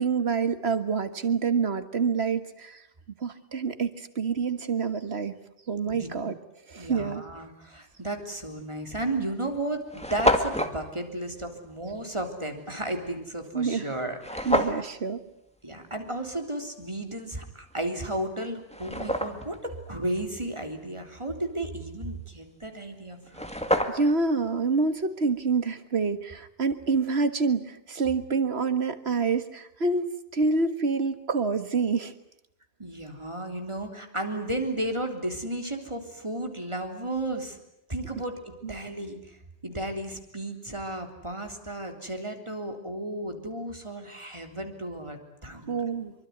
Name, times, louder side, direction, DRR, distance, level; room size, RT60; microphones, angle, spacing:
voice 1, 0.0-2.8 3.2-5.4 5.7-6.4 6.7-7.2 13.5-13.8 14.5-15.2 23.9-32.1 38.6-38.7 45.7-46.1, right 4 dB, 65° right, 10 dB, 1.9 m, -27 dB
voice 2, 5.8-6.2 6.8-14.6 15.6-23.5 32.8-37.6 37.9-39.2 39.6-45.8, right 1 dB, 25° right, 4 dB, 3.5 m, -34 dB
sound 1, 8.4-8.6 9.3-9.4 9.6-9.7 9.9-10.8 14.2-14.9 17.8-17.9 18.4-19.6 22.9-23.0 23.2-24.2, equal, 5° left, 2.1 m, -27 dB
25.0 x 24.0 x 9.4 m, 0.79 s
omnidirectional pair, 1.2 m